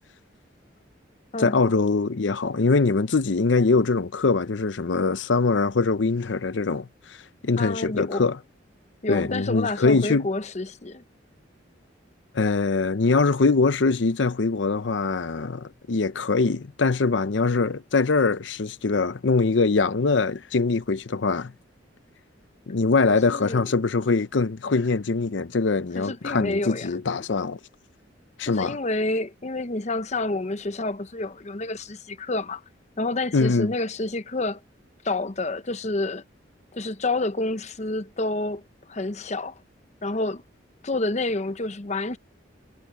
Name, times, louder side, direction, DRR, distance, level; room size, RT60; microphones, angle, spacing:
voice 1, 1.4-7.2 7.4-8.4 9.1-10.3 12.3-21.5 22.7-27.6 28.4-28.8 33.3-33.7, left 3 dB, 70° left, 0.7 m, -23 dB
voice 2, 7.6-8.3 9.0-11.0 23.3-23.7 25.9-26.9 28.5-32.6 33.0-34.6 35.0-36.2 36.7-38.6 38.9-39.6 40.0-40.4 40.8-42.2, left 2 dB, 35° left, 0.8 m, -28 dB
head